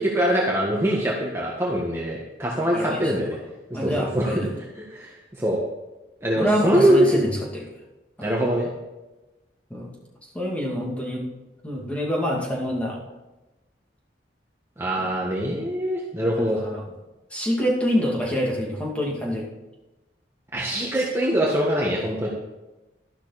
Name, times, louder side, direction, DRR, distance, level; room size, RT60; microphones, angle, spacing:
voice 1, 0.0-3.4 3.7-5.6 6.2-7.3 8.2-8.7 14.8-16.6 20.5-22.3, right 1 dB, 15° right, -4 dB, 1.5 m, -23 dB
voice 2, 2.7-3.2 3.7-4.5 6.4-7.7 8.2-8.3 9.7-9.9 10.3-11.2 11.6-13.0 16.4-16.8 17.3-19.4, equal, 5° left, -3 dB, 2.4 m, -26 dB
12.5 x 11.5 x 4.2 m, 1.1 s
head